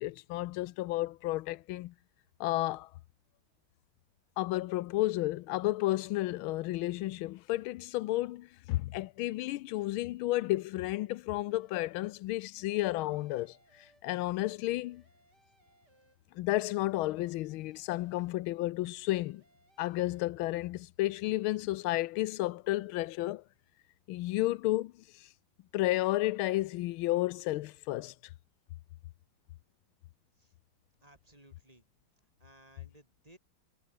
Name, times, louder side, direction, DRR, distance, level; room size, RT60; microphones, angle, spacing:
voice 1, 0.0-1.9 2.4-2.9 4.4-13.6 14.0-15.0 16.3-19.4 19.8-23.4 24.1-24.9 25.2-25.3 25.7-28.1, left 17 dB, 85° left, 1.5 m, -32 dB
sound 1, 11.5-12.1 12.6-14.4 14.8-16.6 16.9-18.7 19.1-20.2, right 2 dB, 55° right, 8.9 m, -69 dB
voice 2, 31.0-31.9 32.4-33.4, right 1 dB, 15° right, 6.2 m, -59 dB
omnidirectional pair, 2.2 m